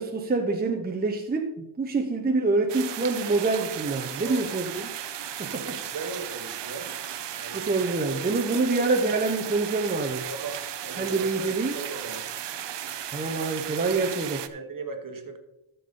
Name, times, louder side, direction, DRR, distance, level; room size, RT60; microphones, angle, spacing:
voice 1, 0.0-4.8 5.4-5.8 7.5-10.3 11.0-11.7 13.1-14.4, right 3 dB, 20° right, 3 dB, 0.7 m, -26 dB
sound 1, 2.7-14.5, right 10 dB, 60° right, 0.7 m, -35 dB
voice 2, 4.2-4.6 5.8-6.9 7.3-7.9 8.2-8.9 10.3-12.3 14.5-15.4, right 4 dB, 40° right, 5 dB, 1.2 m, -38 dB
13.0 x 6.9 x 3.7 m, 0.92 s
wide cardioid pair, 140°, 48 cm